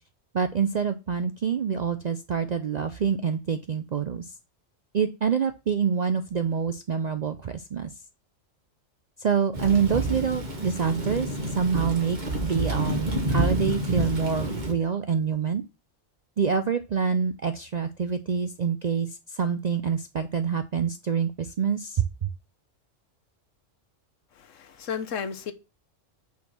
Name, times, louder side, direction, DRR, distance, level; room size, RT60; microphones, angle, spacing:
voice 1, 0.3-4.3 4.9-7.9 9.2-11.3 11.6-15.6 16.4-22.3, right 6 dB, 60° right, 0.4 m, -26 dB
Thunder / Rain, 9.5-14.7, right 1 dB, 40° right, 1.4 m, -28 dB
voice 2, 24.3-25.5, left 7 dB, 80° left, 1.2 m, -33 dB
5.6 x 4.4 x 6.2 m
omnidirectional pair, 1.3 m